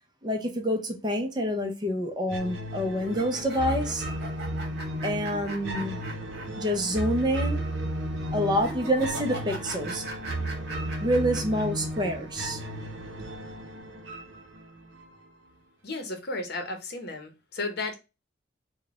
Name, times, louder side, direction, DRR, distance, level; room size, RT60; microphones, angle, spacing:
voice 1, 0.2-4.0 5.0-6.0 6.6-7.7 8.3-10.0 11.0-12.6, equal, 20° right, 0.6 m, -27 dB
sound 1, 2.3-15.3, right 1 dB, 70° right, 0.7 m, -34 dB
sound 2, 3.1-6.7 7.0-7.1 8.5-11.6, right 2 dB, 55° right, 1.2 m, -40 dB
voice 2, 15.8-17.9, left 2 dB, 55° left, 0.8 m, -34 dB
3.9 x 2.2 x 3.5 m
head